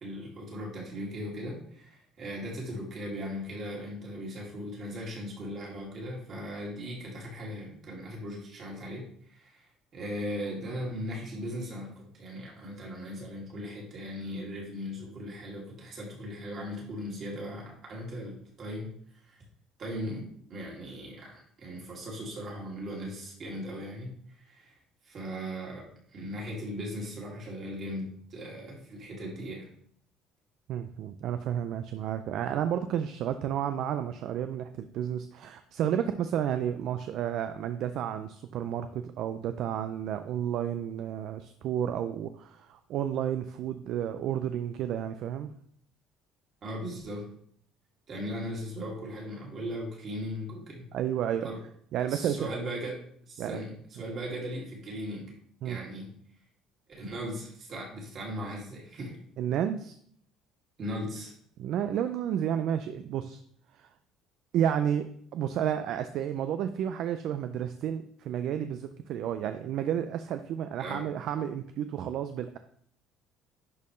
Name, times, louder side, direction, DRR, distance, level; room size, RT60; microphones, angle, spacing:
voice 1, 0.0-18.9 19.3-19.4 19.8-24.7 25.0-29.7 46.6-47.2 48.1-50.8 51.4-51.6 52.1-53.0 53.3-55.3 55.6-56.1 57.0-59.2 60.8-61.3 70.8-71.1, equal, 35° right, -2 dB, 2.3 m, -38 dB
voice 2, 30.7-45.5 50.9-51.5 51.9-52.6 53.4-53.6 55.6-55.8 59.4-59.9 61.6-63.4 63.7-63.9 64.5-65.1 65.3-72.6, right 9 dB, 50° right, 9 dB, 0.4 m, -31 dB
10.5 x 4.3 x 3.1 m, 0.63 s
cardioid pair, 170°, 0 cm